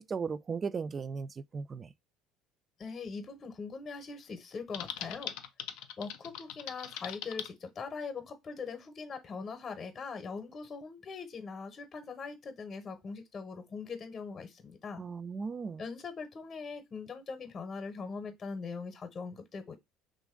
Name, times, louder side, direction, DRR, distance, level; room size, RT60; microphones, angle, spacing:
voice 1, 0.0-1.9 15.0-15.8, right 5 dB, 35° right, 0.3 m, -36 dB
voice 2, 2.8-5.3 6.0-15.0 15.8-19.8, left 4 dB, 35° left, 0.8 m, -41 dB
Typing, 4.7-7.5, left 10 dB, 75° left, 0.4 m, -41 dB
3.0 x 2.5 x 3.6 m
supercardioid pair, 80°, 0 cm